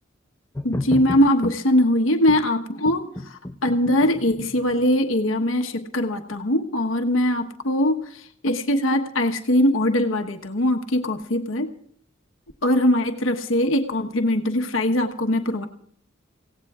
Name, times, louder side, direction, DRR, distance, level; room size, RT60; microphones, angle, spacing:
voice 1, 0.6-11.7 12.6-15.7, left 1 dB, 85° left, 4 dB, 1.2 m, -21 dB
sound 1, 0.6-1.6 2.3-2.4 2.9-4.9, left 1 dB, 15° left, 0.5 m, -32 dB
29.5 x 17.0 x 2.4 m, 0.62 s
head